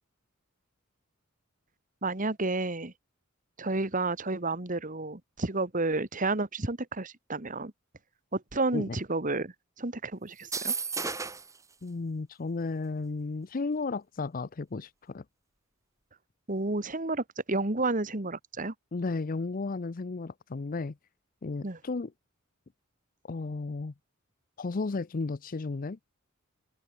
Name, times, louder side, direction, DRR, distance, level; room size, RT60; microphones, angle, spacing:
voice 1, 2.0-2.9 3.6-7.7 8.3-10.7 16.5-18.7 21.6-21.8, right 2 dB, 40° right, 1.9 m, -31 dB
sound 1, 10.4-11.6, right 5 dB, 15° right, 1.8 m, -33 dB
voice 2, 11.8-15.2 18.9-21.0 21.4-22.1 23.2-23.9 24.6-26.0, left 3 dB, 40° left, 0.5 m, -34 dB
head